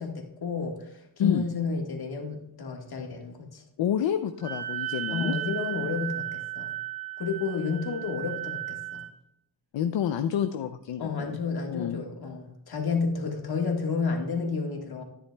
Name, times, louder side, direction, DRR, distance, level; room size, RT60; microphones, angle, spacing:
voice 1, 0.0-3.6 5.1-6.7 7.2-9.0 11.0-15.0, left 5 dB, 55° left, 2 dB, 1.6 m, -31 dB
voice 2, 3.8-5.3 9.7-11.4 11.7-12.0, left 9 dB, 75° left, 8 dB, 0.6 m, -28 dB
Wind instrument woodwind instrument, 4.4-9.1, right 16 dB, 65° right, 2.2 m, -35 dB
11.0 x 9.9 x 2.2 m, 0.77 s
wide cardioid pair, 120°, 45 cm